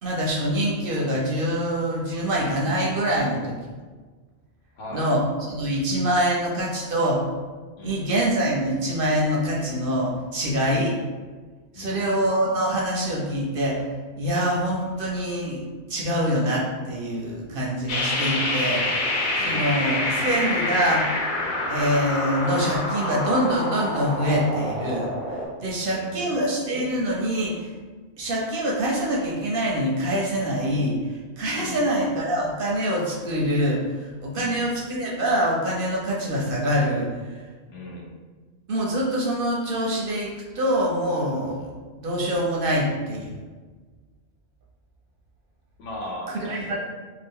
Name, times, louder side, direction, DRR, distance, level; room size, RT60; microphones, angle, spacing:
voice 1, 0.0-3.6 4.9-5.2 5.5-7.2 7.8-11.0 11.7-13.9 14.2-15.6 15.9-18.8 19.3-21.1 21.7-27.8 28.2-37.5 38.7-43.4 46.4-46.8, equal, 60° right, -3 dB, 0.6 m, -25 dB
voice 2, 4.8-5.1 7.8-8.1 11.7-12.2 19.4-19.8 25.8-26.3 31.6-32.0 34.3-34.7 37.7-38.1 45.8-46.8, left 1 dB, 85° left, -2 dB, 1.0 m, -38 dB
sound 1, 17.9-25.5, left 1 dB, 55° left, 0.6 m, -27 dB
2.7 x 2.3 x 3.6 m, 1.4 s
omnidirectional pair, 1.2 m